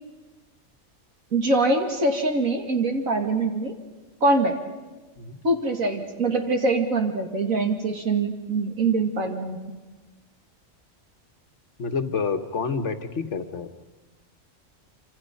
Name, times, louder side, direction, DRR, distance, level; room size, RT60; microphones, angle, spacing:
voice 1, 1.3-3.7 4.2-4.6 5.4-9.6, right 2 dB, 80° right, 3 dB, 2.8 m, -23 dB
voice 2, 11.8-13.7, left 5 dB, 60° left, 8 dB, 1.6 m, -28 dB
27.0 x 26.0 x 5.5 m, 1.3 s
omnidirectional pair, 1.4 m